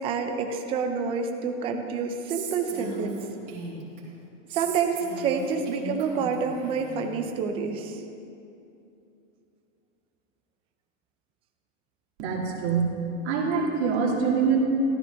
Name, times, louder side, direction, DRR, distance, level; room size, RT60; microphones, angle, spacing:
voice 1, 0.0-3.2 4.5-8.0, right 5 dB, 15° right, 5 dB, 0.5 m, -28 dB
Female speech woman speaking, 2.3-4.0 4.5-7.0, right 3 dB, 40° right, 2.8 m, -38 dB
voice 2, 12.2-12.9 13.2-14.6, right 5 dB, 55° right, -1 dB, 2.4 m, -24 dB
14.0 x 13.0 x 3.4 m, 2.7 s
supercardioid pair, 160°, 38 cm